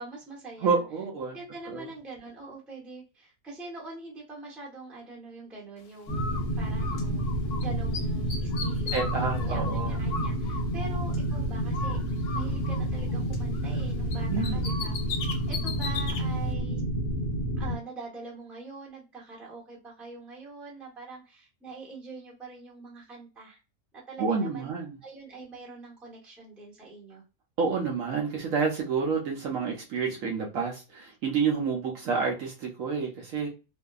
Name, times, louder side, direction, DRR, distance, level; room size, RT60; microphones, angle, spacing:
voice 1, 0.0-0.8 1.3-7.3 7.6-9.0 9.4-12.0 12.3-16.8 17.6-23.6 23.9-24.7 25.0-27.2, right 3 dB, ahead, -4 dB, 0.6 m, -44 dB
voice 2, 0.6-1.4 1.7-1.8 8.9-10.0 14.3-14.6 24.2-25.0 27.6-33.5, right 5 dB, 70° right, 0 dB, 0.9 m, -29 dB
Bird, 6.1-7.6 7.9-11.4 11.7-13.8 14.1-16.2, left 5 dB, 85° left, 1.2 m, -38 dB
sound 1, 6.1-17.8, right 1 dB, 50° left, 0.7 m, -29 dB
2.6 x 2.3 x 2.3 m, 0.31 s
omnidirectional pair, 1.7 m